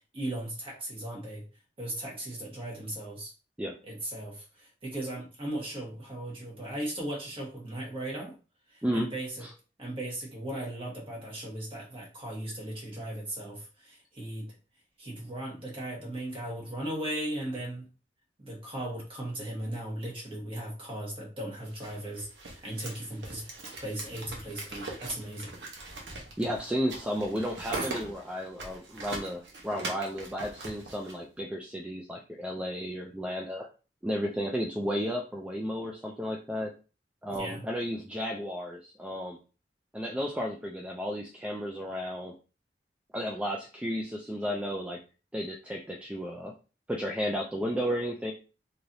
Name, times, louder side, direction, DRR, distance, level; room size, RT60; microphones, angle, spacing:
voice 1, 0.1-1.4 1.8-3.3 3.8-8.3 8.7-9.5 9.8-14.5 15.0-17.9 18.4-23.4 23.8-25.5 37.3-37.6, right 1 dB, 30° right, -2 dB, 1.3 m, -37 dB
sound 1, 21.7-31.1, right 2 dB, 85° right, 0.9 m, -41 dB
voice 2, 26.4-33.7 34.0-36.7 37.2-39.4 39.9-42.3 43.1-45.0 45.3-46.5 46.9-48.3, equal, 5° right, 0 dB, 0.3 m, -33 dB
3.2 x 2.7 x 2.6 m, 0.34 s
head